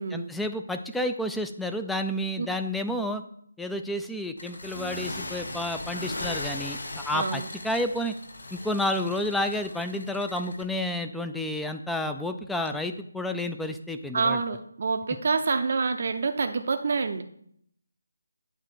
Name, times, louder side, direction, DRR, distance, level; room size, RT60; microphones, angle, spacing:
voice 1, 0.1-3.2 3.6-8.1 8.5-14.4, left 1 dB, ahead, 6 dB, 0.4 m, -30 dB
sound 1, 4.4-10.7, left 2 dB, 65° left, 1.0 m, -38 dB
Acoustic guitar, 4.7-7.8, right 3 dB, 85° left, 2.6 m, -48 dB
voice 2, 7.1-7.5 14.1-17.2, right 4 dB, 50° right, 7 dB, 0.6 m, -27 dB
9.0 x 3.1 x 6.2 m, 0.68 s
figure-of-eight pair, 155°, 0 cm